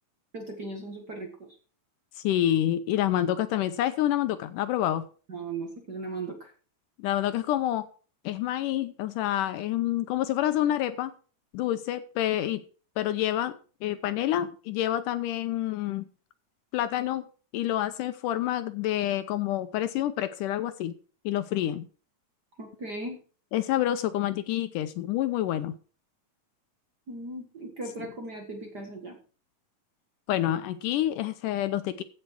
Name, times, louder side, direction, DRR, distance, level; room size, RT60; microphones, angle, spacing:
voice 1, 0.3-1.5 5.3-6.5 22.6-23.2 27.1-29.2, right 2 dB, 40° right, 2 dB, 1.7 m, -37 dB
voice 2, 2.2-5.1 7.0-7.9 8.3-11.1 11.5-12.6 13.0-16.0 16.7-17.3 17.5-20.9 21.3-21.9 23.5-25.8 30.3-32.0, left 12 dB, 75° left, 11 dB, 2.1 m, -28 dB
15.0 x 6.6 x 4.6 m, 0.39 s
omnidirectional pair, 4.0 m